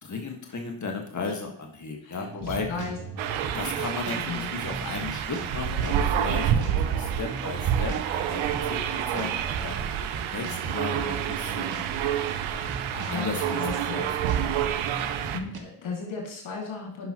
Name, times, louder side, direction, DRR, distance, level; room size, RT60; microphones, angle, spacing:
voice 1, 0.0-2.8 3.5-11.8 12.5-12.6 12.9-14.8, left 4 dB, 40° left, 2 dB, 1.6 m, -35 dB
voice 2, 2.0-3.0 3.2-3.3 4.2-4.5 12.8-14.0 15.3-17.1, left 4 dB, 80° left, -1 dB, 2.4 m, -36 dB
sound 1, 2.1-15.6, right 4 dB, 55° right, 1.5 m, -39 dB
sound 2, 3.2-15.4, right 9 dB, 90° right, 0.7 m, -28 dB
11.0 x 5.6 x 3.0 m, 0.68 s
supercardioid pair, 45°, 46 cm